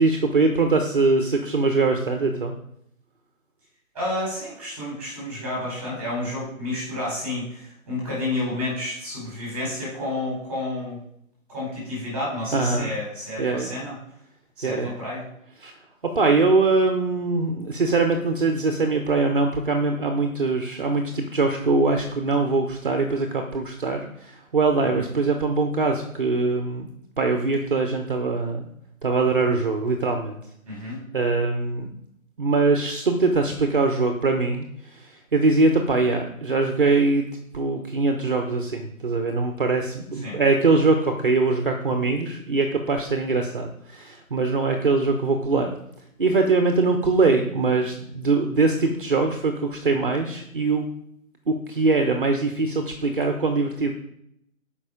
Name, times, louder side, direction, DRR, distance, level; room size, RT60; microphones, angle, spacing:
voice 1, 0.0-2.5 12.5-12.9 13.4-13.8 14.6-15.0 15.6-15.7 16.0-26.9 27.2-28.7 29.0-30.4 31.1-31.9 32.4-37.3 37.5-45.7 46.2-50.9 51.5-53.9, right 3 dB, 40° right, 4 dB, 1.1 m, -22 dB
voice 2, 3.9-11.0 11.5-14.0 14.6-15.2 24.9-25.1 30.6-31.0 40.2-40.4, left 1 dB, 5° right, -6 dB, 4.0 m, -30 dB
14.0 x 5.5 x 5.0 m, 0.75 s
hypercardioid pair, 175°, 42 cm